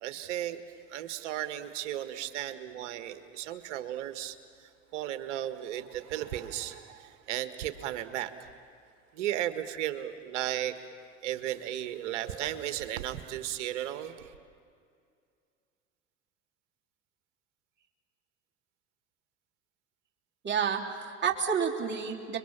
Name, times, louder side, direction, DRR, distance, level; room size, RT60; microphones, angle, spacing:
voice 1, 0.0-0.6 0.9-8.5 9.1-10.7 11.2-14.3, right 12 dB, 70° right, 10 dB, 1.6 m, -35 dB
voice 2, 20.4-22.4, right 7 dB, 30° right, -2 dB, 3.2 m, -30 dB
30.0 x 23.0 x 7.4 m, 2.3 s
figure-of-eight pair, 70°, 37 cm